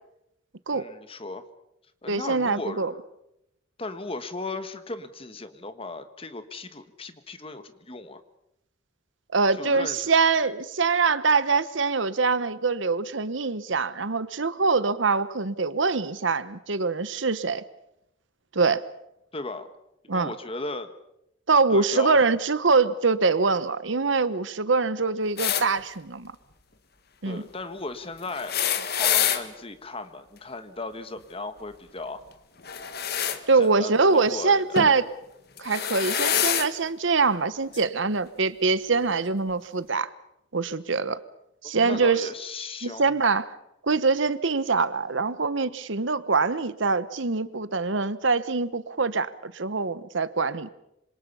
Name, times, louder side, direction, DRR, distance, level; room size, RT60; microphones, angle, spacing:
voice 1, 0.7-1.4 2.0-3.0 3.8-8.2 9.5-10.1 19.3-19.7 20.1-20.9 21.7-22.2 27.2-32.2 33.6-34.9 41.6-43.1, left 3 dB, 30° left, 10 dB, 1.5 m, -36 dB
voice 2, 2.1-2.9 9.3-17.6 18.5-18.8 20.1-20.3 21.5-26.3 27.2-27.4 33.5-35.1 35.6-40.1 40.5-41.2 41.6-42.3 42.8-43.5 43.8-50.7, right 4 dB, 70° right, 15 dB, 1.0 m, -24 dB
sound 1, 25.4-25.7 28.3-29.4 32.6-33.4 34.8-35.0 35.6-36.7 37.7-37.8 39.0-39.1, left 9 dB, 50° left, 1.6 m, -26 dB
26.0 x 26.0 x 5.6 m, 0.82 s
head